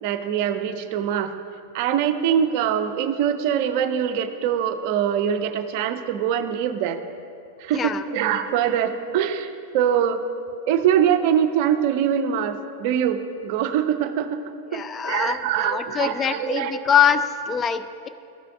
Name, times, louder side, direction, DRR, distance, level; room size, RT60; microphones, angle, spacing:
voice 1, 0.0-1.3 1.7-7.0 7.6-10.2 10.7-14.4 14.7-16.7, right 9 dB, 45° right, 9 dB, 0.5 m, -23 dB
voice 2, 7.7-8.0 14.7-18.1, left 8 dB, 25° left, 11 dB, 0.4 m, -23 dB
13.5 x 5.8 x 3.5 m, 2.5 s
figure-of-eight pair, 90°, 0 cm